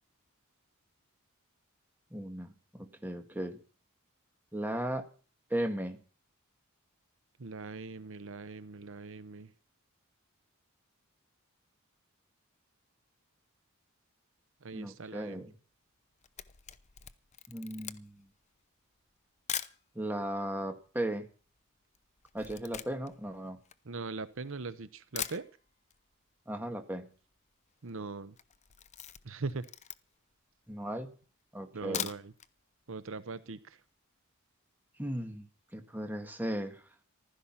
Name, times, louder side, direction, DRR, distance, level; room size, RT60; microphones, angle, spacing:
voice 1, 2.1-3.6 4.5-5.1 5.5-6.0 14.7-15.5 17.5-18.3 20.0-21.3 22.3-23.6 26.5-27.1 30.7-31.1 31.5-32.1 35.0-35.5 35.7-36.9, right 1 dB, 10° right, 5 dB, 1.8 m, -36 dB
voice 2, 7.4-9.5 14.6-15.4 23.8-25.5 27.8-28.3 29.2-29.7 31.7-32.3 32.9-33.8, right 3 dB, 65° right, 14 dB, 0.9 m, -41 dB
Camera, 16.0-19.8 20.5-20.6 20.8-24.5 24.9-25.0 25.2-26.0 26.3-26.4 26.7-26.8 26.9-27.4 27.7-27.9 28.3-30.3 30.8-30.9 31.7-32.5 32.9-33.0 33.3-33.4, left 9 dB, 35° left, 0.8 m, -42 dB
15.0 x 13.0 x 5.8 m, 0.39 s
head